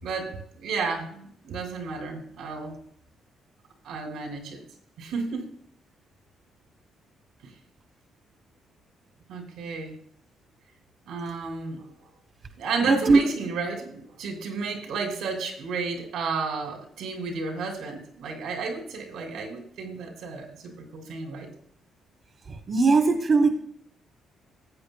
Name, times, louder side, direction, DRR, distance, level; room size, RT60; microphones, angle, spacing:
voice 1, 0.0-2.8 3.8-4.6 5.0-5.5 9.3-9.9 11.1-11.9 12.6-21.5, right 4 dB, 85° right, 2 dB, 2.8 m, -32 dB
voice 2, 12.8-13.2 22.7-23.6, right 3 dB, 45° right, 4 dB, 1.3 m, -19 dB
15.5 x 8.5 x 2.3 m, 0.66 s
cardioid pair, 90°, 0 cm